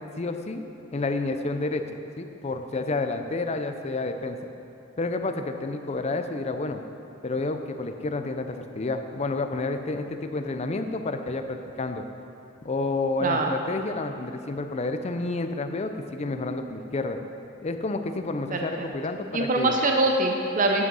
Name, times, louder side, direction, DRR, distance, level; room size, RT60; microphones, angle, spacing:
voice 1, 0.2-0.6 0.9-1.8 2.2-4.4 5.0-6.8 7.2-12.0 12.6-17.2 17.6-19.8, left 2 dB, 35° left, 7 dB, 0.5 m, -30 dB
voice 2, 18.5-18.9 19.3-20.9, right 2 dB, 40° right, 2 dB, 0.6 m, -23 dB
9.6 x 6.0 x 5.5 m, 2.8 s
head